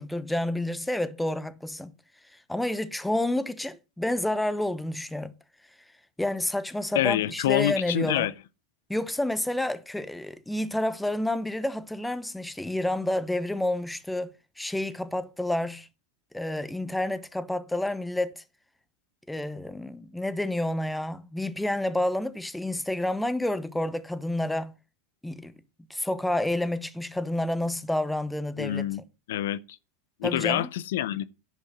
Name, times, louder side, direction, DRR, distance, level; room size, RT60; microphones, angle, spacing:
voice 1, 0.0-1.9 2.5-5.3 6.2-8.3 8.9-15.9 16.3-18.4 19.3-24.7 25.2-25.5 25.9-28.8 30.2-30.7, left 1 dB, 5° left, 1.0 m, -29 dB
voice 2, 6.9-8.3 28.6-29.0 29.3-29.8 30.2-31.3, left 13 dB, 75° left, 0.6 m, -26 dB
10.5 x 5.4 x 7.4 m
hypercardioid pair, 105°, 0 cm